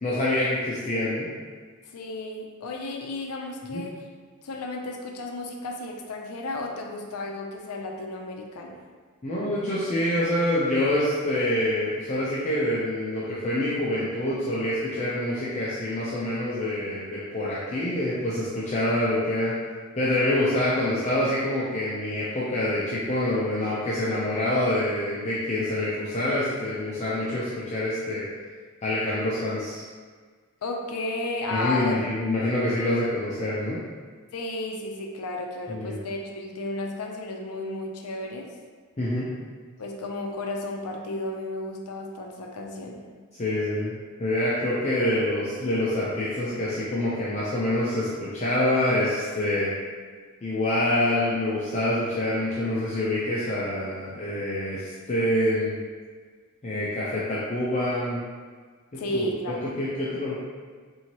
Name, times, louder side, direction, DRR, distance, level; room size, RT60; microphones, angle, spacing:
voice 1, 0.0-1.3 3.7-3.8 9.2-19.5 20.0-28.3 28.8-29.8 31.5-33.8 35.7-35.9 39.0-39.3 43.4-49.7 50.4-55.7 56.6-58.2 58.9-59.3 59.8-60.4, left 1 dB, 30° left, -8 dB, 0.5 m, -26 dB
voice 2, 1.9-4.0 4.4-8.8 30.6-31.9 34.3-38.5 39.8-43.0 58.9-59.9, left 2 dB, 90° left, 2 dB, 0.5 m, -33 dB
4.4 x 2.7 x 2.9 m, 1.5 s
head